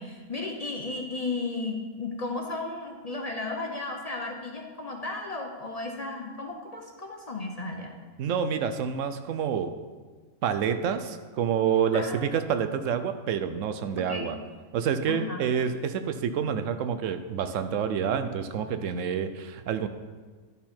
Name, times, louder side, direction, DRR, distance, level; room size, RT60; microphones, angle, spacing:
voice 1, 0.0-8.0 11.9-12.3 14.0-14.3 15.1-15.5, left 3 dB, 35° left, 2 dB, 0.7 m, -34 dB
voice 2, 8.2-9.7 10.4-14.3 14.7-19.9, right 7 dB, 80° right, 10 dB, 1.0 m, -28 dB
11.0 x 5.4 x 4.4 m, 1.4 s
omnidirectional pair, 1.3 m